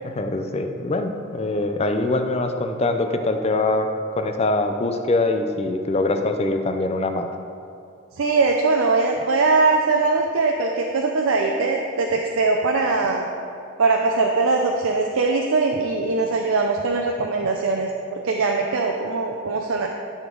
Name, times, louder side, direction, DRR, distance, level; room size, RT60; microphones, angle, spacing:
voice 1, 0.0-3.9 4.2-7.3, left 2 dB, 30° left, 6 dB, 0.5 m, -23 dB
voice 2, 8.2-13.3 13.8-19.9, right 3 dB, 85° right, 1 dB, 0.5 m, -21 dB
12.5 x 5.2 x 3.8 m, 2.5 s
head